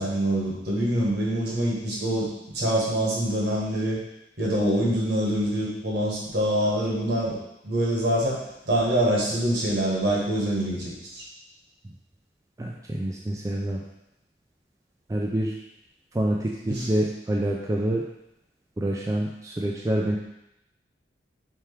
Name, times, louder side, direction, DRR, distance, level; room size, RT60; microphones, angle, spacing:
voice 1, 0.0-2.3 2.5-4.0 4.4-7.4 7.6-11.2 16.7-16.9, right 1 dB, 70° right, -4 dB, 1.4 m, -25 dB
voice 2, 12.6-13.8 15.1-15.5 16.1-18.0 18.8-20.2, right 1 dB, 20° right, -2 dB, 0.3 m, -27 dB
4.5 x 3.4 x 3.4 m, 0.87 s
head